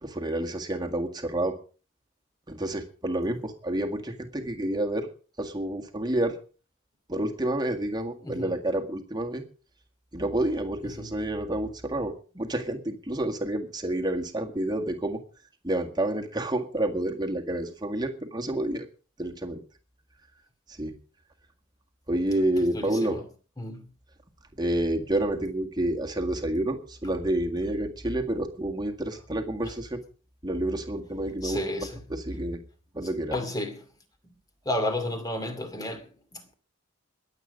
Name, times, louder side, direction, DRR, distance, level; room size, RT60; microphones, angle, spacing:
voice 1, 0.0-1.6 2.5-5.1 5.4-6.4 7.1-9.4 10.1-15.2 15.6-18.9 19.2-19.6 20.7-21.0 22.1-23.2 24.6-30.0 30.4-32.6 32.9-33.3, right 1 dB, 20° right, 1.8 m, -29 dB
voice 2, 8.2-8.5 10.9-11.1 22.7-23.2 23.6-23.9 29.6-29.7 31.4-32.0 33.3-33.9 34.2-34.3 34.6-36.5, left 1 dB, 20° left, 2.4 m, -32 dB
21.5 x 8.4 x 5.2 m
head